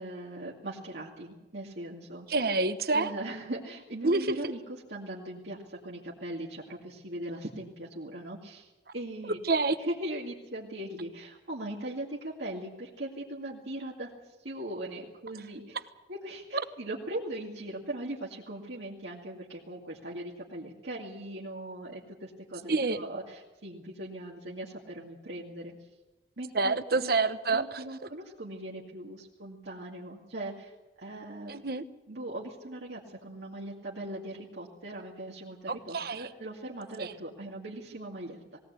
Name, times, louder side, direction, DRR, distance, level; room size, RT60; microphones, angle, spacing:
voice 1, 0.0-2.3 2.9-4.6 4.9-9.4 9.8-14.1 14.4-15.6 16.1-22.7 23.0-25.7 26.4-27.1 27.5-30.7 31.0-31.5 32.1-38.6, right 1 dB, 80° right, -4 dB, 2.4 m, -39 dB
voice 2, 2.3-3.1 4.0-4.5 9.3-9.8 22.7-23.0 26.5-27.8 31.5-31.8 35.7-36.3 37.0-37.1, right 3 dB, 60° right, 11 dB, 1.1 m, -28 dB
19.5 x 18.0 x 8.3 m, 1.1 s
head